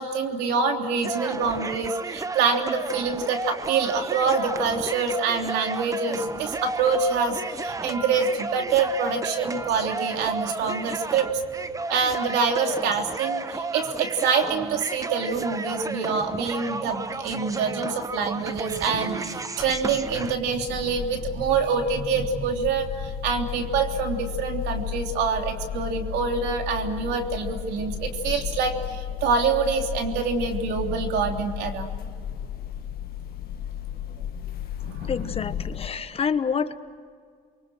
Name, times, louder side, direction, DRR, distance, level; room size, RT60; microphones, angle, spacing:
voice 1, 0.0-11.4 11.9-31.9 34.8-35.1, right 5 dB, 85° right, 3 dB, 3.3 m, -26 dB
sound 1, 1.0-20.3, right 3 dB, 20° right, 1.0 m, -33 dB
sound 2, 19.6-35.9, left 9 dB, 65° left, 1.9 m, -34 dB
voice 2, 35.1-36.7, left 6 dB, 35° left, 11 dB, 1.3 m, -27 dB
29.5 x 24.0 x 6.3 m, 2.2 s
cardioid pair, 110°, 17 cm